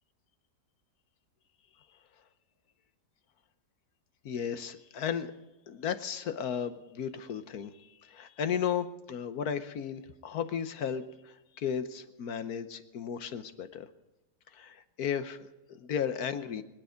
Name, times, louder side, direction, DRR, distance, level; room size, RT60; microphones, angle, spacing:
voice 1, 4.2-5.3 5.7-7.7 8.0-13.9 14.5-15.4 15.7-16.6, left 8 dB, 65° left, 10 dB, 1.3 m, -34 dB
25.0 x 9.5 x 5.1 m, 1.0 s
omnidirectional pair, 1.8 m